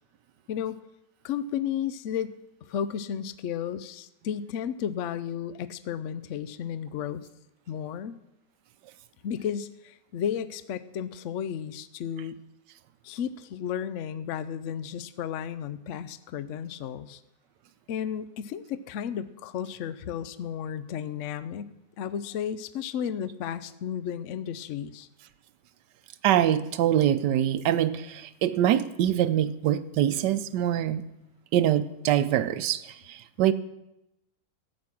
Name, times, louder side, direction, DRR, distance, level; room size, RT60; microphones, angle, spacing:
voice 1, 0.5-0.8 1.2-7.3 7.7-8.2 9.2-12.4 13.0-17.2 17.9-25.1, left 8 dB, 70° left, 0.7 m, -33 dB
voice 2, 26.2-31.0 31.5-33.5, right 11 dB, 70° right, 1.2 m, -24 dB
14.5 x 8.6 x 6.0 m
omnidirectional pair, 2.0 m